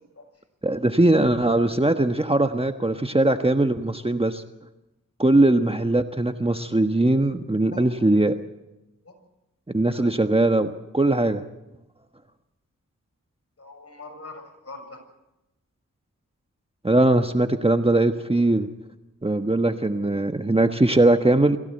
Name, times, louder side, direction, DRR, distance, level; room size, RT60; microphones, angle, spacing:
voice 1, 0.6-4.4 5.2-8.3 9.7-11.4 16.8-18.7 19.2-21.6, right 2 dB, 15° right, 7 dB, 1.3 m, -20 dB
voice 2, 7.7-8.0 9.0-9.2 9.8-10.1 13.6-15.0, left 2 dB, 45° left, 4 dB, 6.8 m, -43 dB
22.5 x 16.0 x 7.9 m, 0.95 s
cardioid pair, 45°, 33 cm